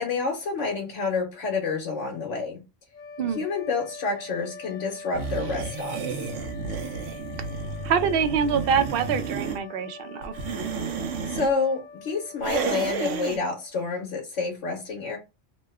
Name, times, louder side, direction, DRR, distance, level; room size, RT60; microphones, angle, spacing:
voice 1, 0.0-2.6 3.3-6.0 11.3-15.2, left 4 dB, 80° left, 1.3 m, -28 dB
sound 1, 2.9-13.8, left 4 dB, 50° left, 1.1 m, -44 dB
sound 2, 5.1-9.6 10.2-11.5 12.4-13.4, right 5 dB, 90° right, 1.0 m, -31 dB
voice 2, 7.8-10.3, right 7 dB, 60° right, 0.7 m, -25 dB
3.0 x 2.1 x 3.4 m
omnidirectional pair, 1.2 m